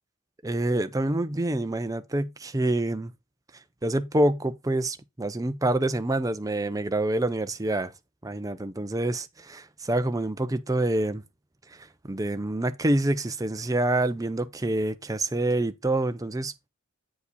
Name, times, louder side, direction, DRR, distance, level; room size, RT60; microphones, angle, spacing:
voice 1, 0.4-3.1 3.8-7.9 8.2-11.2 11.7-16.5, right 1 dB, 15° right, 0.5 m, -27 dB
8.2 x 4.9 x 4.2 m
head